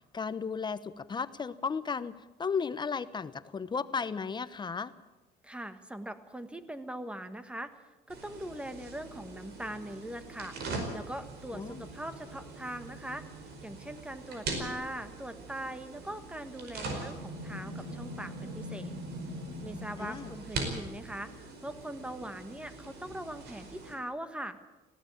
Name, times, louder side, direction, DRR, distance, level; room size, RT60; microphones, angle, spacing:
voice 1, 0.1-4.9 11.5-11.9 20.0-20.3, left 5 dB, 25° left, 14 dB, 0.9 m, -35 dB
voice 2, 5.4-7.7 8.1-10.6 10.9-13.2 13.6-18.9 19.6-24.6, right 1 dB, 5° right, 10 dB, 1.6 m, -41 dB
sound 1, 8.1-23.9, right 2 dB, 75° right, 4.9 m, -41 dB
19.5 x 16.0 x 8.6 m, 1.1 s
cardioid pair, 110°, 17 cm